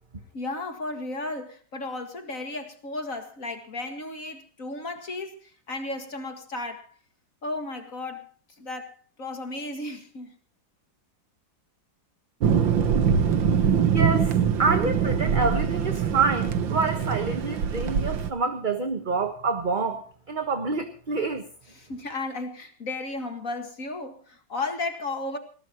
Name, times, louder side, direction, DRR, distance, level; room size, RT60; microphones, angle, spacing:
voice 1, 0.3-6.9 7.4-8.3 8.6-8.9 9.2-10.4 21.7-25.4, left 2 dB, 45° left, 6 dB, 2.2 m, -34 dB
Thunder, 12.4-18.3, right 7 dB, 85° right, 2.0 m, -23 dB
voice 2, 13.9-21.4, right 4 dB, 30° right, 6 dB, 1.3 m, -27 dB
20.5 x 18.5 x 3.0 m, 0.41 s
omnidirectional pair, 2.0 m